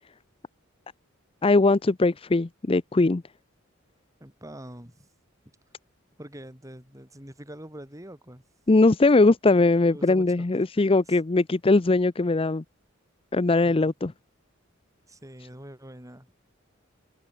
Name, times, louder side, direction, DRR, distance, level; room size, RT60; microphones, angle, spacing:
voice 1, 1.4-3.2 8.7-12.6 13.3-14.1, left 3 dB, 25° left, 0.5 m, -20 dB
voice 2, 4.2-5.1 6.2-8.4 9.9-10.6 11.1-11.2 13.6-13.9 15.1-16.3, right 1 dB, 15° right, 5.9 m, -44 dB
head